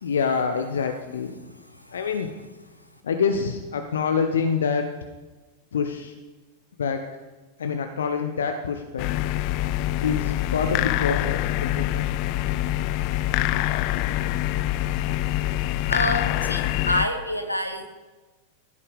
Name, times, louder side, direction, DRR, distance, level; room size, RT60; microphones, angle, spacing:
voice 1, 0.0-1.4 1.9-2.3 3.0-4.9 5.7-6.1 6.8-7.1 7.6-9.1 10.0-12.1 13.4-13.6, left 6 dB, 65° left, 6 dB, 1.0 m, -26 dB
voice 2, 1.4-2.0 15.9-17.8, equal, 85° left, 6 dB, 1.5 m, -28 dB
sound 1, 9.0-17.1, left 14 dB, 45° left, 0.5 m, -25 dB
16.0 x 9.8 x 5.4 m, 1.2 s
figure-of-eight pair, 90°, 0 cm